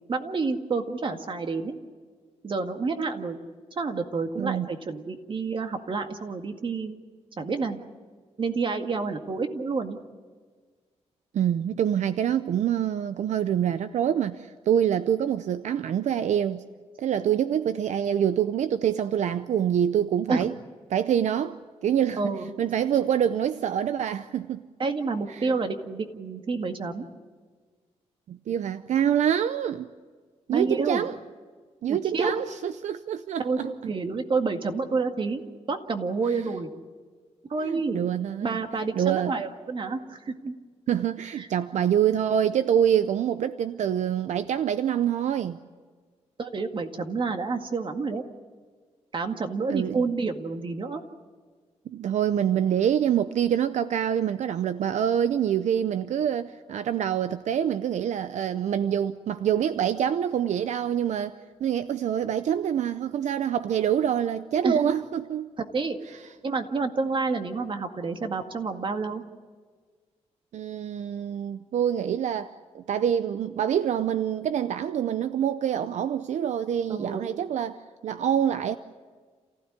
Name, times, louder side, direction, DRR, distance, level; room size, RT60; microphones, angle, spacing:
voice 1, 0.1-1.7 2.4-3.4 3.7-6.9 7.4-7.8 8.4-10.0 20.3-20.5 22.2-22.5 24.8-27.1 30.5-31.0 31.9-32.3 33.4-35.4 35.7-36.7 37.4-38.1 38.4-40.5 41.4-41.5 46.4-48.2 49.1-51.0 64.6-65.0 65.6-66.0 66.4-69.2 76.9-77.3, right 4 dB, 45° right, 1.9 m, -29 dB
voice 2, 4.4-4.7 11.3-16.6 17.0-20.5 20.9-22.2 22.6-24.7 25.4-25.5 28.3-29.9 30.5-31.1 31.8-33.7 37.6-38.6 39.0-39.3 40.9-45.6 49.7-50.0 51.9-65.5 70.5-78.8, right 9 dB, 80° right, 0.6 m, -26 dB
28.0 x 15.5 x 9.7 m
cardioid pair, 110°, 12 cm